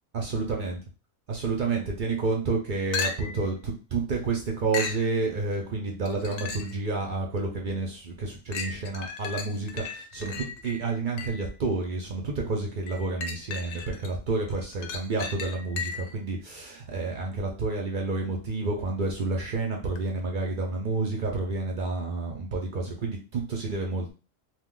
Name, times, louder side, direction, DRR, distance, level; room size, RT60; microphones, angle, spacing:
voice 1, 0.1-0.8 1.3-24.1, right 3 dB, 55° right, 0 dB, 0.5 m, -30 dB
sound 1, 2.9-3.5 4.7-5.1 6.1-6.8 7.4-7.5 8.5-11.5 12.9-14.1 14.5-16.2 20.0-20.1, left 5 dB, 65° left, 0.7 m, -35 dB
2.7 x 2.2 x 3.7 m, 0.34 s
omnidirectional pair, 1.5 m